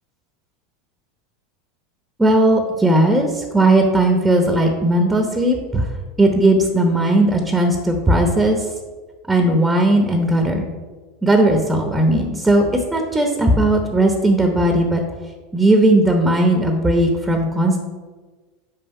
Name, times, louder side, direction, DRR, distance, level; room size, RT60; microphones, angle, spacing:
voice 1, 2.2-5.9 6.2-8.6 9.3-10.7 11.2-15.0 15.5-17.8, right 1 dB, 10° right, 3 dB, 0.9 m, -17 dB
5.7 x 5.2 x 5.4 m, 1.4 s
hypercardioid pair, 105°, 0 cm